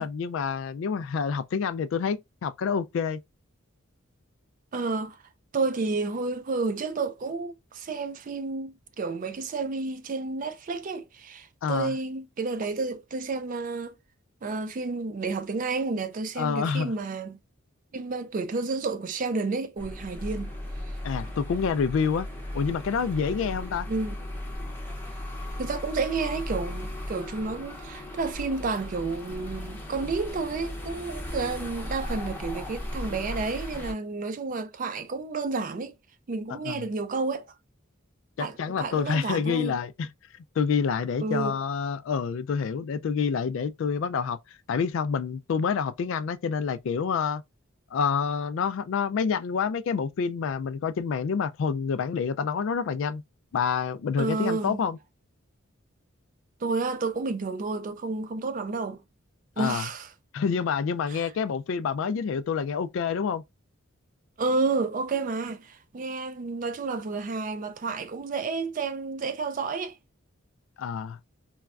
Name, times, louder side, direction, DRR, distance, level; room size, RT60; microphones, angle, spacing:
voice 1, 0.0-3.2 11.6-11.9 16.4-16.9 21.0-22.3 22.5-23.9 36.5-36.9 38.4-40.1 40.6-44.4 44.7-47.4 47.9-53.2 53.5-55.0 59.6-59.9 60.3-63.4 70.8-71.2, left 6 dB, 65° left, 0.3 m, -28 dB
voice 2, 4.7-5.2 5.5-13.9 14.4-17.4 17.9-20.5 23.9-24.2 25.6-35.9 36.3-37.4 38.4-39.7 41.2-41.6 54.2-54.8 56.6-59.0 59.6-60.1 61.1-61.3 64.4-70.0, right 3 dB, 40° right, 0.4 m, -30 dB
sound 1, 19.8-33.9, left 1 dB, 10° left, 0.6 m, -36 dB
4.0 x 2.2 x 2.4 m
head